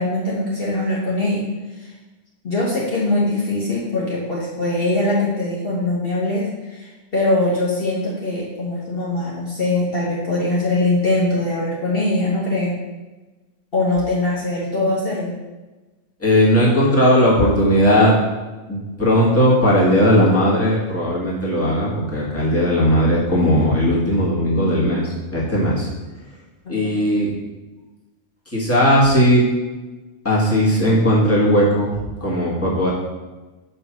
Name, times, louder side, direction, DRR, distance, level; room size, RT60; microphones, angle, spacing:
voice 1, 0.0-1.5 1.8-1.9 2.4-12.8 13.7-15.3 26.6-26.9, left 2 dB, 50° left, -6 dB, 1.4 m, -22 dB
voice 2, 16.2-18.1 18.7-25.9 26.7-27.3 28.5-29.4 30.2-31.9 32.2-32.9, equal, 10° left, -6 dB, 1.7 m, -17 dB
5.4 x 4.2 x 6.1 m, 1.2 s
omnidirectional pair, 1.3 m